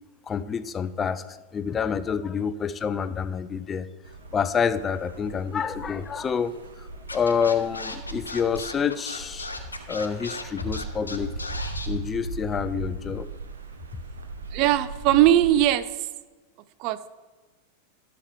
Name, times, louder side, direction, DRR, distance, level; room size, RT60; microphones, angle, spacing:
voice 1, 0.3-3.9 4.3-9.5 9.9-11.3 11.9-13.3, left 6 dB, 20° left, 14 dB, 0.4 m, -28 dB
sound 1, 4.0-15.7, right 3 dB, 70° right, 0.8 m, -38 dB
Scratching (performance technique), 7.1-11.9, left 3 dB, 80° left, 0.7 m, -36 dB
voice 2, 14.5-15.9 16.8-17.1, right 13 dB, 40° right, 15 dB, 0.4 m, -20 dB
12.0 x 6.9 x 3.3 m, 1.3 s
figure-of-eight pair, 90°, 0 cm